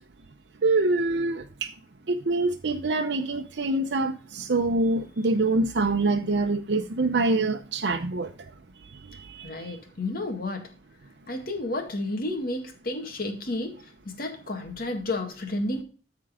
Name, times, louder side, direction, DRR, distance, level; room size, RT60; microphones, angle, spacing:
voice 1, 0.6-1.7 2.1-8.3 9.1-9.5, right 2 dB, 85° right, 0.7 m, -25 dB
voice 2, 9.4-10.7 11.3-13.8 14.1-15.8, left 2 dB, 55° left, 2.0 m, -31 dB
13.5 x 4.6 x 3.6 m
head